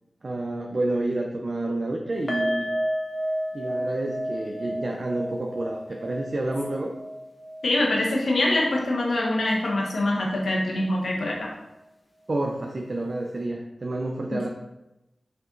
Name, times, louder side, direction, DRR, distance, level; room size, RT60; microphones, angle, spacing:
voice 1, 0.2-2.7 3.5-6.9 12.3-14.5, right 2 dB, 55° right, 0 dB, 0.7 m, -29 dB
sound 1, 2.3-9.5 9.7-9.9 10.3-10.4, equal, 35° left, 1.3 m, -32 dB
voice 2, 7.6-11.5 14.3-14.4, left 1 dB, 90° left, -2 dB, 1.3 m, -24 dB
5.8 x 5.4 x 4.0 m, 0.93 s
wide cardioid pair, 75°, 0 cm